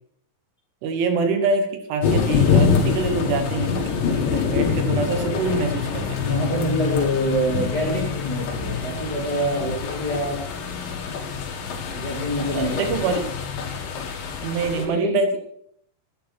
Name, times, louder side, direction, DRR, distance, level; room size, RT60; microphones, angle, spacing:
voice 1, 0.8-6.2 12.5-13.3 14.4-15.4, right 4 dB, 75° right, 7 dB, 3.7 m, -25 dB
sound 1, 2.0-14.9, left 6 dB, 65° left, 4.3 m, -25 dB
voice 2, 6.2-10.4 11.9-13.1 14.7-15.4, equal, 30° left, -3 dB, 2.2 m, -26 dB
12.0 x 11.0 x 5.8 m, 0.68 s
omnidirectional pair, 5.7 m